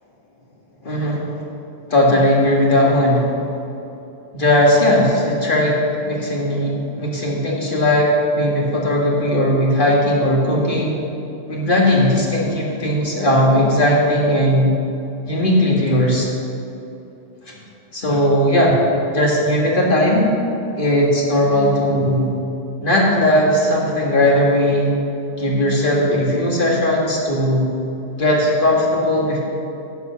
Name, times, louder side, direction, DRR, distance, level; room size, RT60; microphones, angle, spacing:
voice 1, 0.8-1.3 1.9-3.3 4.3-11.0 11.5-14.7 15.3-16.3 17.5-17.6 17.9-20.3 20.8-22.4 22.8-24.9 25.4-27.7 28.2-29.4, left 1 dB, 45° left, -3 dB, 2.1 m, -17 dB
11.5 x 8.3 x 5.8 m, 2.8 s
omnidirectional pair, 1.3 m